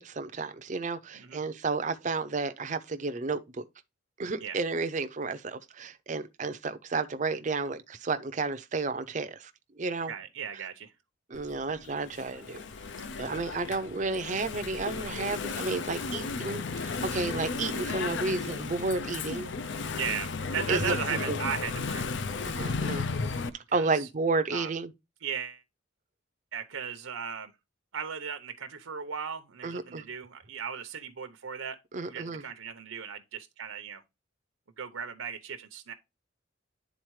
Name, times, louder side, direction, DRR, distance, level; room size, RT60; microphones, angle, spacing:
voice 1, 0.0-3.6 4.2-9.5 9.8-10.1 11.3-12.6 13.2-19.5 20.7-21.0 21.3-21.4 22.4-23.1 23.5-24.9 29.6-30.0 31.9-32.4, right 3 dB, 35° right, 0.5 m, -32 dB
voice 2, 10.1-10.9 20.0-22.1 23.7-24.1 24.5-24.7 25.2-25.6 26.5-27.5 27.9-31.8 32.1-34.0 34.8-35.9, right 6 dB, 80° right, 0.7 m, -36 dB
Engine / Mechanisms, 11.3-23.5, left 4 dB, 60° left, 0.5 m, -34 dB
10.0 x 3.9 x 3.1 m
head